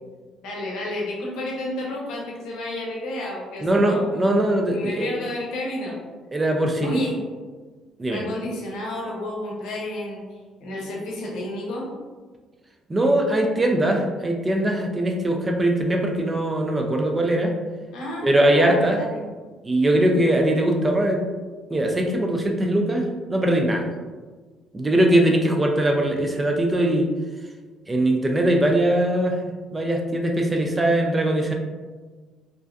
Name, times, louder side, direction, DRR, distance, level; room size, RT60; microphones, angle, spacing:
voice 1, 0.4-4.0 4.7-6.0 6.8-7.2 8.1-10.2 10.6-11.9 17.9-19.2, left 1 dB, 75° left, -2 dB, 0.7 m, -31 dB
voice 2, 3.6-5.1 6.3-7.0 8.0-8.2 12.9-17.5 18.2-19.0 19.6-21.3 21.7-23.9 24.7-27.1 27.9-29.4 29.7-31.5, right 1 dB, 20° right, 2 dB, 0.4 m, -21 dB
2.5 x 2.1 x 2.3 m, 1.4 s
supercardioid pair, 80°, 0 cm